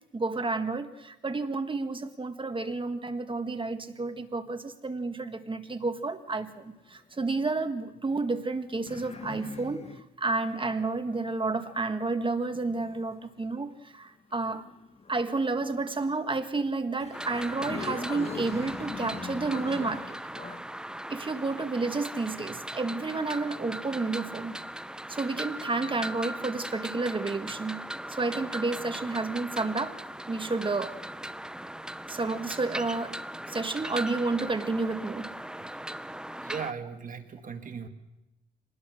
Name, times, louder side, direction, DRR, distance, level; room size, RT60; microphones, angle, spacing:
voice 1, 0.1-14.6 15.1-20.2 21.1-24.5 25.1-27.8 28.1-30.0 30.3-31.0 32.1-33.2 33.5-35.3, right 3 dB, 25° right, 8 dB, 1.5 m, -31 dB
sound 1, 6.3-7.2 8.0-13.4 14.3-16.1 16.7-16.8 17.0-20.6, left 4 dB, 30° left, 1.5 m, -43 dB
sound 2, 17.1-36.7, right 1 dB, 5° right, 0.7 m, -39 dB
voice 2, 36.4-37.9, right 6 dB, 40° right, 6 dB, 2.0 m, -37 dB
27.5 x 20.0 x 6.4 m, 0.96 s
cardioid pair, 90°, 20 cm